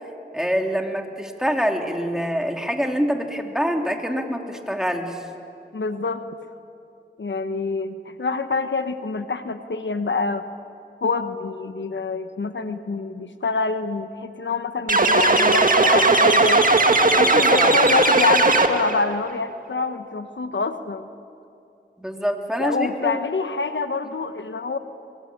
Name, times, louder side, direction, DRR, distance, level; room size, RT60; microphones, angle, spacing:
voice 1, 0.3-5.2 17.2-17.7 22.0-23.2, equal, 5° right, 2 dB, 3.1 m, -25 dB
voice 2, 5.7-6.2 7.2-10.5 11.0-16.6 17.2-21.1 22.6-24.8, left 4 dB, 75° left, 9 dB, 1.1 m, -26 dB
sound 1, 14.9-19.0, right 2 dB, 45° right, 1.8 m, -17 dB
23.5 x 22.0 x 8.6 m, 2.7 s
cardioid pair, 40°, 19 cm